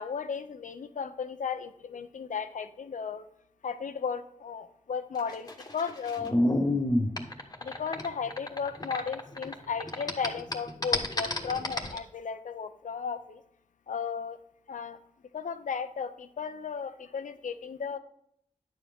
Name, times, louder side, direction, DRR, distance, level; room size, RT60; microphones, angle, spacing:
voice 1, 0.0-3.3 3.6-6.3 7.6-13.4 13.9-14.4 14.7-15.0 15.3-18.0, left 6 dB, 90° left, 10 dB, 0.7 m, -35 dB
sound 1, 5.2-9.5 9.8-12.0, left 1 dB, 30° left, 1.3 m, -29 dB
10.0 x 7.2 x 3.6 m, 0.71 s
wide cardioid pair, 80°, 13 cm